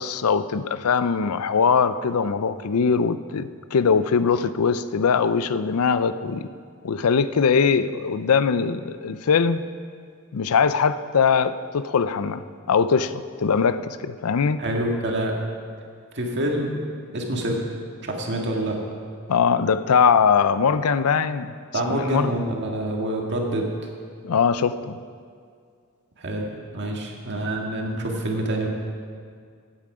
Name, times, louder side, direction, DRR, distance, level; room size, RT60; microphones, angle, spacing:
voice 1, 0.0-6.5 6.8-9.6 10.3-14.6 19.3-21.5 21.9-22.4 24.2-25.0, left 6 dB, 80° left, 13 dB, 0.5 m, -21 dB
voice 2, 14.6-15.3 16.1-16.7 17.1-17.6 18.0-18.8 21.7-23.7 26.2-28.7, right 1 dB, 55° right, 0 dB, 1.8 m, -26 dB
15.0 x 9.0 x 4.9 m, 2.2 s
head